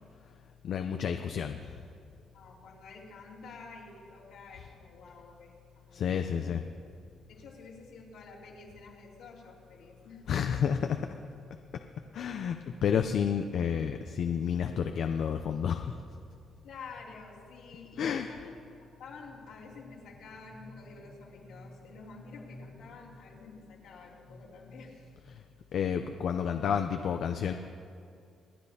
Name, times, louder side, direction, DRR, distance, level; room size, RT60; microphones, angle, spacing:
voice 1, 0.6-1.8 5.9-6.6 10.3-11.0 12.1-16.0 18.0-18.3 25.3-25.4 25.7-27.5, left 7 dB, 65° left, 6 dB, 0.5 m, -30 dB
voice 2, 2.3-6.3 7.3-10.3 16.6-18.5 19.0-25.3, left 3 dB, 85° left, -5 dB, 2.8 m, -49 dB
27.5 x 9.8 x 2.8 m, 2.4 s
cardioid pair, 90°, 0 cm